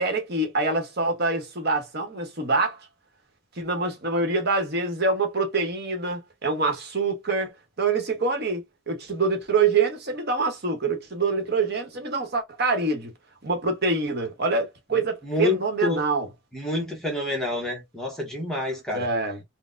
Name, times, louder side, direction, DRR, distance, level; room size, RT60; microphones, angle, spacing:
voice 1, 0.0-2.8 3.6-13.1 13.4-16.3 18.9-19.4, right 3 dB, 50° right, 0.9 m, -25 dB
voice 2, 15.2-16.0 16.5-19.1, left 3 dB, ahead, 0.8 m, -28 dB
4.0 x 2.1 x 2.5 m
head